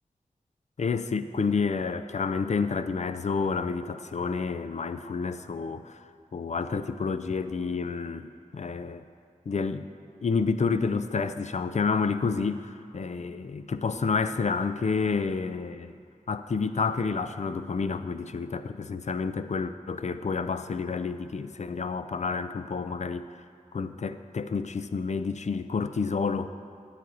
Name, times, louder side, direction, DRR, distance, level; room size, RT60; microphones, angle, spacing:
voice 1, 0.8-6.0 6.3-9.0 9.5-9.9 10.2-15.9 16.3-23.3 23.7-26.5, left 5 dB, 55° left, 11 dB, 0.4 m, -29 dB
9.4 x 8.8 x 4.0 m, 2.3 s
wide cardioid pair, 75°, 14 cm